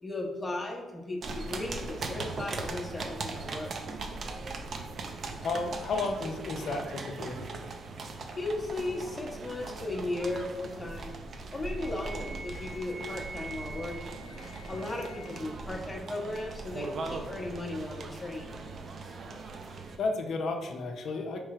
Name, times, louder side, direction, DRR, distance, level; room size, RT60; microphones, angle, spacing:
voice 1, 0.0-3.7 8.3-11.1 11.5-14.1 14.7-18.5, left 2 dB, 20° left, -1 dB, 1.0 m, -36 dB
sound 1, 1.2-20.0, right 3 dB, 50° right, 0.5 m, -40 dB
voice 2, 5.4-7.4 20.0-21.4, left 3 dB, 60° left, 4 dB, 0.6 m, -32 dB
Wind instrument woodwind instrument, 11.8-15.5, right 2 dB, 10° right, 1.2 m, -45 dB
3.2 x 3.2 x 4.8 m, 1.2 s
cardioid pair, 90°, 0 cm